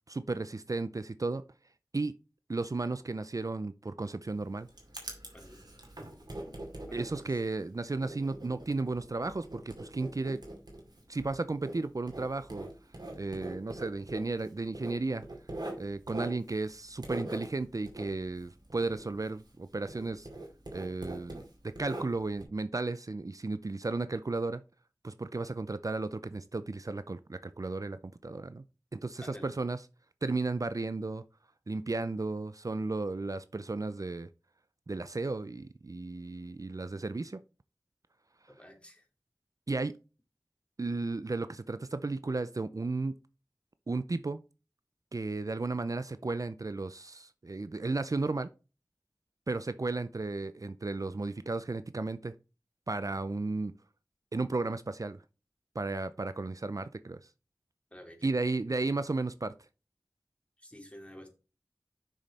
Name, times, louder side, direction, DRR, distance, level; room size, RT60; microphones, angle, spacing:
voice 1, 0.1-1.4 1.9-2.1 2.5-4.7 6.9-10.4 11.1-12.7 13.2-15.2 15.8-20.3 20.7-24.6 25.0-28.6 28.9-29.8 30.2-31.2 31.7-34.3 34.9-37.4 39.7-39.9 40.8-43.1 43.9-44.4 45.1-48.5 49.5-52.3 52.9-53.7 54.3-55.2 55.8-57.2 58.2-59.5, right 3 dB, 55° right, 0.5 m, -34 dB
Writing, 4.3-19.6 19.9-22.4, right 1 dB, 85° right, 2.3 m, -43 dB
voice 2, 6.9-7.3 29.2-29.6 38.5-39.0 57.9-58.3 60.6-61.3, equal, 15° left, 2.6 m, -50 dB
6.4 x 6.3 x 4.2 m
wide cardioid pair, 45°, 7 cm